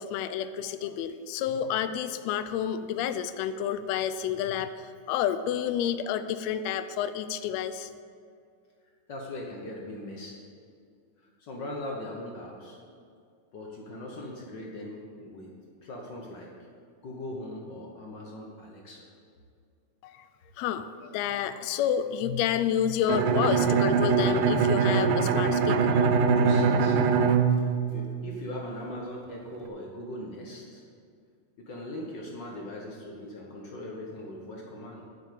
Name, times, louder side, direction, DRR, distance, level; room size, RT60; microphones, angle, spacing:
voice 1, 0.0-7.9 20.0-20.3 20.6-26.0, left 9 dB, 80° left, 12 dB, 1.6 m, -30 dB
voice 2, 9.1-10.4 11.4-12.8 13.5-15.5 15.8-16.5 17.0-19.1 26.3-27.2 27.5-30.8 31.6-35.0, left 1 dB, 65° left, -1 dB, 1.1 m, -40 dB
Bowed string instrument, 23.1-28.7, right 5 dB, 90° right, 2.2 m, -23 dB
7.9 x 7.1 x 8.4 m, 2.3 s
omnidirectional pair, 3.5 m